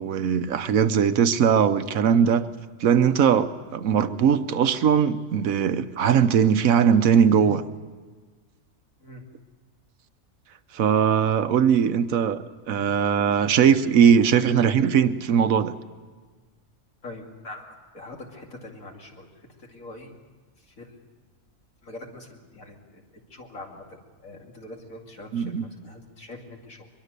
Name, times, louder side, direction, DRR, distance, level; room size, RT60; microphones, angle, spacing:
voice 1, 0.0-2.5 2.8-7.6 10.7-15.8 25.3-25.7, right 7 dB, 70° right, 11 dB, 1.2 m, -20 dB
voice 2, 17.0-19.3 19.6-20.1 20.7-21.0 21.8-26.9, left 2 dB, 60° left, 1 dB, 3.0 m, -43 dB
23.0 x 22.5 x 6.7 m, 1.4 s
omnidirectional pair, 1.6 m